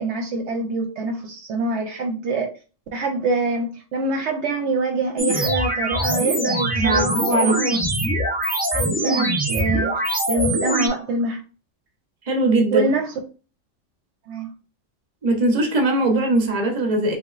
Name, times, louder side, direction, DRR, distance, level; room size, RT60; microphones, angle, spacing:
voice 1, 0.0-2.5 2.9-7.8 8.7-11.4 12.7-13.1 14.3-14.5, right 3 dB, 70° right, 0.9 m, -25 dB
sound 1, 5.2-10.9, right 1 dB, 15° right, 0.4 m, -23 dB
voice 2, 6.7-7.6 12.2-12.9 15.2-17.2, right 2 dB, 35° right, 0.8 m, -20 dB
3.7 x 2.9 x 2.4 m
omnidirectional pair, 1.3 m